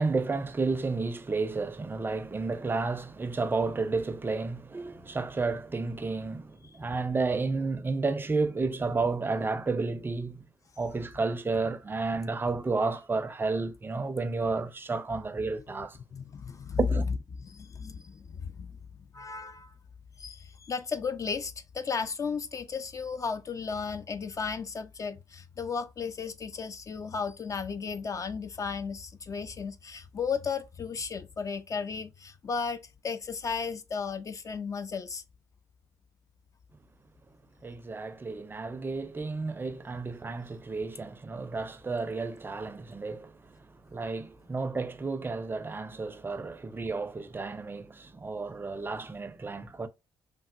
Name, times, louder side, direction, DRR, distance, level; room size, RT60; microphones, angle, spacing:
voice 1, 0.0-10.5 10.8-16.0 16.9-17.0 37.6-49.9, right 3 dB, 25° right, 0.4 m, -32 dB
voice 2, 16.1-16.8 17.4-18.8 19.1-19.7 20.2-35.2 49.6-49.7, left 5 dB, 35° left, 0.4 m, -35 dB
3.3 x 2.0 x 2.5 m
hypercardioid pair, 55°, 9 cm